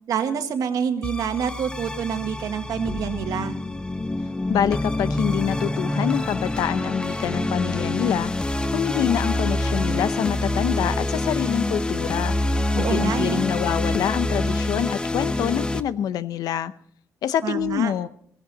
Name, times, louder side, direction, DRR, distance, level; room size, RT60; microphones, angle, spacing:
voice 1, 0.1-3.5 12.8-13.4 17.4-17.9, right 7 dB, 75° right, 7 dB, 1.7 m, -27 dB
sound 1, 1.0-15.8, left 2 dB, 15° left, 0.7 m, -26 dB
voice 2, 4.5-8.3 8.7-12.3 12.7-16.7 17.2-18.1, left 10 dB, 85° left, 14 dB, 0.7 m, -26 dB
17.5 x 15.0 x 4.1 m, 0.63 s
cardioid pair, 120°, 6 cm